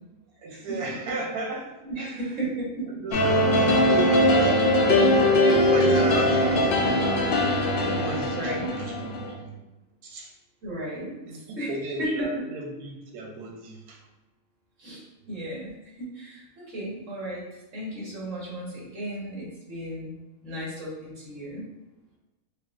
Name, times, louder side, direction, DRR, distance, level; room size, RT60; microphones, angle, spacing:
voice 1, 0.4-2.2 3.0-3.1 3.6-7.4 7.8-9.6 10.0-10.3 11.3-14.0, right 3 dB, 90° right, 0 dB, 1.1 m, -34 dB
voice 2, 1.8-2.9 8.3-8.7 10.6-11.7 12.0-12.1 14.8-20.2 20.4-21.6, right 1 dB, 60° right, -5 dB, 1.5 m, -35 dB
sound 1, 3.1-9.3, left 1 dB, 75° left, 0.5 m, -21 dB
4.4 x 2.1 x 2.4 m, 1.0 s
omnidirectional pair, 1.6 m